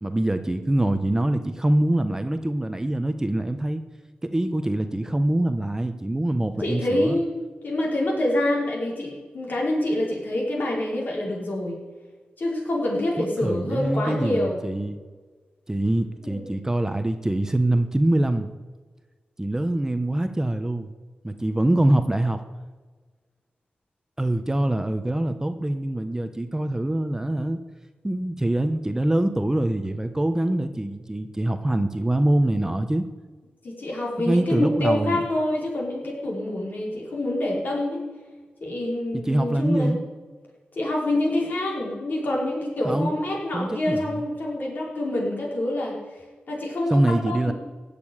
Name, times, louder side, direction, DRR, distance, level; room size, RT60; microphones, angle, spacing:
voice 1, 0.0-3.8 4.2-7.2 13.2-15.0 15.7-18.5 19.4-20.9 21.2-22.4 24.2-27.6 28.0-33.1 34.2-35.2 39.1-40.0 42.8-43.1 43.5-44.2 46.9-47.5, right 1 dB, 15° right, 9 dB, 1.0 m, -24 dB
voice 2, 6.6-11.8 12.4-14.6 16.2-16.4 33.6-38.0 38.6-39.9 40.8-46.0 46.5-47.5, left 1 dB, 60° left, -3 dB, 5.5 m, -26 dB
16.0 x 7.0 x 9.9 m, 1.4 s
cardioid pair, 80°, 4 cm